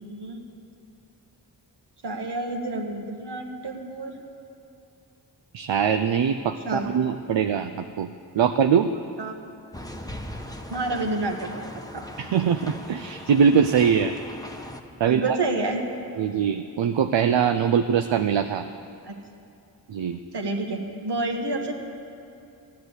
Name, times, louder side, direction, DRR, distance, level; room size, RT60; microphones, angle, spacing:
voice 1, 0.1-0.4 2.0-4.2 6.6-6.9 9.2-9.5 10.7-11.6 11.9-12.1 15.1-15.9 19.0-19.1 20.3-21.7, right 2 dB, 65° right, 3 dB, 1.7 m, -29 dB
voice 2, 5.5-8.1 8.3-8.9 12.2-14.1 15.0-15.4 16.2-18.7 19.9-20.2, right 7 dB, 85° right, 8 dB, 0.6 m, -22 dB
sound 1, 9.7-14.8, left 1 dB, 10° left, 1.0 m, -39 dB
15.0 x 10.5 x 8.1 m, 2.6 s
wide cardioid pair, 65°, 43 cm